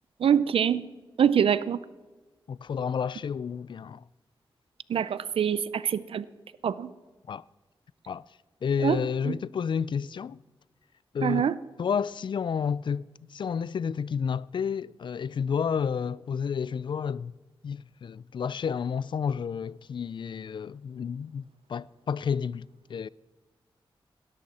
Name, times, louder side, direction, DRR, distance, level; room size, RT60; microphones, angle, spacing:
voice 1, 0.2-0.8 1.2-1.8 4.9-6.2 6.6-6.9 8.8-9.0 9.3-9.4 11.2-11.5, right 8 dB, 85° right, 0.5 m, -24 dB
voice 2, 2.5-4.0 7.3-7.4 8.1-8.3 8.6-10.4 11.1-11.5 11.8-13.1 13.3-17.3 17.6-21.4 21.7-23.1, left 7 dB, 60° left, 0.3 m, -30 dB
17.0 x 13.0 x 4.2 m
wide cardioid pair, 85°, 9 cm